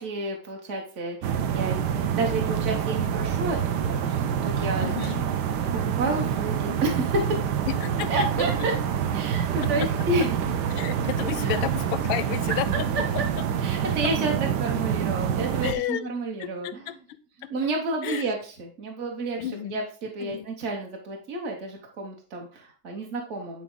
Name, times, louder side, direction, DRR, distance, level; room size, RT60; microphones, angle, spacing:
voice 1, 0.0-3.6 3.9-4.9 6.0-7.4 8.1-8.7 9.1-10.4 11.4-11.6 12.9-13.0 13.6-16.8 17.5-19.4 19.7-23.6, right 2 dB, 45° right, 0 dB, 1.0 m, -30 dB
sound 1, 1.2-15.7, right 8 dB, 65° right, 1.1 m, -27 dB
voice 2, 4.8-5.2 7.6-8.5 9.6-9.9 10.2-10.3 10.7-12.9 13.1-13.4 15.6-16.1 16.4-17.5 18.0-18.3 19.4-19.8 20.2-20.5, left 12 dB, 80° left, 13 dB, 1.4 m, -32 dB
9.4 x 3.8 x 3.7 m, 0.39 s
omnidirectional pair, 2.2 m